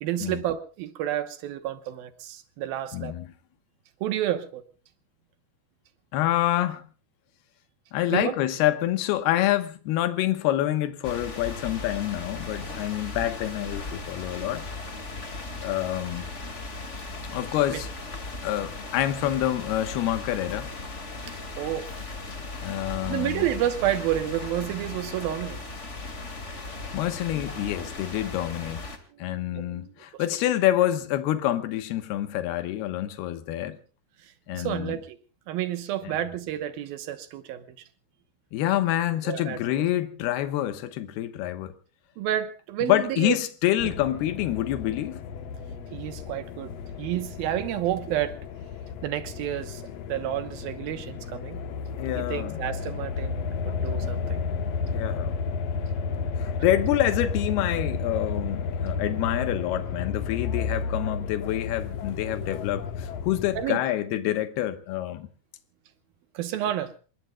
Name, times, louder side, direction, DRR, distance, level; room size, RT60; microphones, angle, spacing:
voice 1, 0.0-3.2 4.0-4.6 8.1-8.3 17.7-17.8 21.3-22.0 23.1-25.6 29.1-30.2 31.3-31.4 34.2-35.2 35.5-37.8 39.2-39.9 42.2-43.4 43.8-43.9 45.9-46.7 47.0-48.4 49.0-49.8 50.1-51.6 52.1-54.5 63.6-63.8 66.3-66.9, right 12 dB, 75° right, 2.8 m, -30 dB
voice 2, 2.9-3.3 6.1-6.8 7.9-14.7 15.6-16.3 17.3-17.9 18.4-20.7 22.6-23.5 26.9-28.8 29.2-33.8 34.5-35.0 36.0-36.2 38.5-41.8 42.8-45.2 52.0-52.6 54.9-55.3 56.4-65.3, left 13 dB, 85° left, 3.2 m, -27 dB
sound 1, 11.0-29.0, left 3 dB, 30° left, 1.5 m, -37 dB
sound 2, 43.8-63.7, left 5 dB, 70° left, 1.5 m, -32 dB
27.5 x 21.5 x 2.3 m
omnidirectional pair, 4.5 m